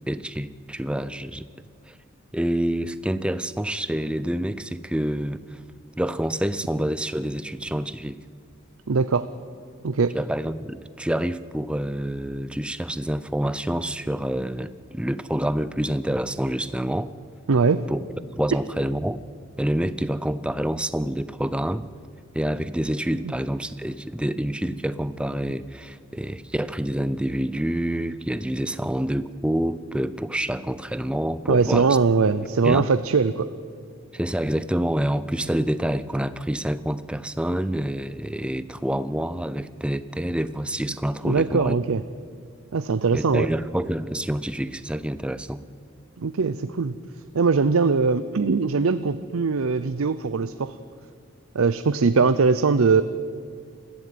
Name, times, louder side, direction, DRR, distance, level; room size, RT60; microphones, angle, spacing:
voice 1, 0.1-1.5 1.9-2.0 2.3-5.6 6.0-8.2 10.1-17.1 17.9-18.0 18.4-19.2 19.6-21.9 22.3-32.0 32.6-32.9 34.1-41.8 43.1-45.6, right 1 dB, 5° right, 14 dB, 0.5 m, -27 dB
voice 2, 8.9-9.3 9.8-10.2 17.5-17.9 31.5-33.5 41.2-42.0 42.7-43.5 46.2-46.9 47.3-50.8 51.5-53.0, right 4 dB, 80° right, 13 dB, 0.6 m, -21 dB
21.0 x 14.5 x 9.4 m, 2.2 s
head